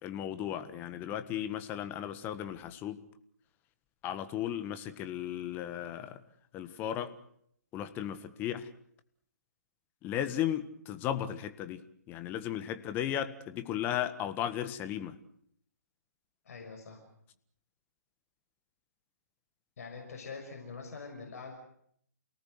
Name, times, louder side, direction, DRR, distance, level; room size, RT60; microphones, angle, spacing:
voice 1, 0.0-3.0 4.0-6.2 6.5-7.1 7.7-8.7 10.0-15.2, left 10 dB, 20° left, 11 dB, 1.6 m, -35 dB
voice 2, 16.4-17.0 19.8-21.6, left 4 dB, 55° left, 2 dB, 6.3 m, -44 dB
28.5 x 18.5 x 8.0 m, 0.69 s
figure-of-eight pair, 135°, 9 cm